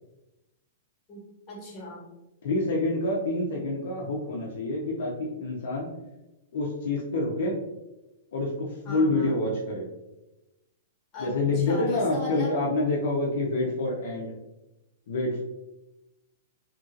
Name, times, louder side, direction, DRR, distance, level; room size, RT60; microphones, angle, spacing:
voice 1, 1.5-2.1 8.8-9.3 11.1-12.5, left 2 dB, 25° left, -6 dB, 1.2 m, -39 dB
voice 2, 2.4-5.9 6.5-7.6 8.3-9.9 11.2-14.3 15.1-15.4, left 2 dB, 65° left, -2 dB, 0.6 m, -27 dB
2.9 x 2.6 x 2.5 m, 0.95 s
hypercardioid pair, 155°, 0 cm